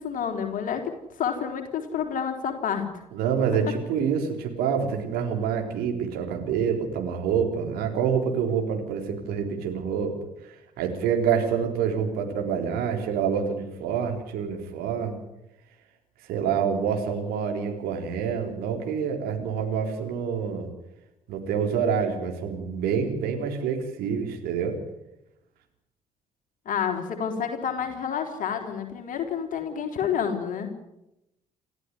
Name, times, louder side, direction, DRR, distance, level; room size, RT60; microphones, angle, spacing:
voice 1, 0.0-2.9 26.7-30.7, left 7 dB, 50° left, 5 dB, 4.0 m, -29 dB
voice 2, 3.1-10.2 10.4-15.2 16.2-20.7 21.3-24.8, right 7 dB, 60° right, 3 dB, 3.8 m, -27 dB
28.5 x 14.0 x 9.7 m, 0.89 s
figure-of-eight pair, 45°, 18 cm